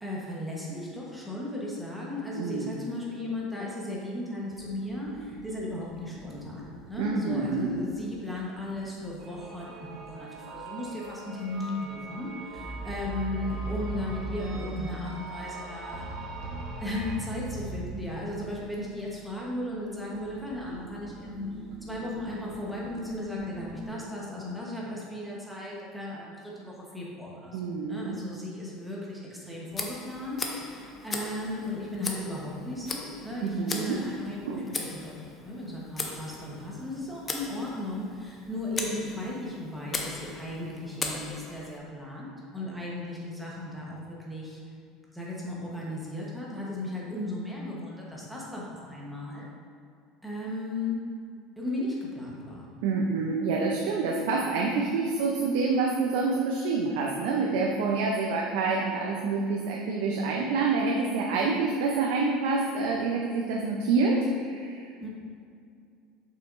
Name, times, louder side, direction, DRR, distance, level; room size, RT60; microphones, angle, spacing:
voice 1, 0.0-16.1 16.8-21.5 21.8-44.6 45.1-49.5 50.2-51.1 51.6-52.7 65.0-65.1, left 1 dB, ahead, -5 dB, 1.1 m, -36 dB
voice 2, 2.4-2.8 7.0-7.8 27.5-28.2 33.4-34.0 34.4-34.6 52.8-65.1, right 4 dB, 75° right, -1 dB, 0.6 m, -27 dB
sound 1, 4.5-10.7 12.5-23.9, right 1 dB, 55° right, 1.2 m, -42 dB
sound 2, 9.2-17.2, right 3 dB, 35° right, 0.8 m, -43 dB
Tick, 29.7-41.8, left 3 dB, 20° left, 0.5 m, -38 dB
7.0 x 5.7 x 2.6 m, 2.3 s
cardioid pair, 155°, 0 cm